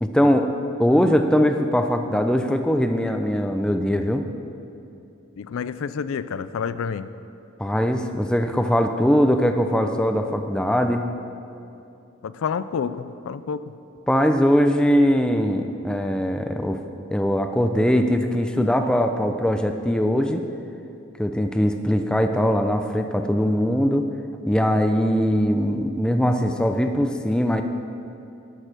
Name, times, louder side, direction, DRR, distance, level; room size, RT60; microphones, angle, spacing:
voice 1, 0.0-0.5 0.8-4.2 7.6-11.0 14.1-16.8 17.1-20.4 21.2-24.1 24.5-27.6, equal, 5° left, 6 dB, 0.4 m, -21 dB
voice 2, 5.4-7.1 12.2-13.7, left 6 dB, 75° left, 14 dB, 0.4 m, -29 dB
11.5 x 6.5 x 6.0 m, 2.7 s
head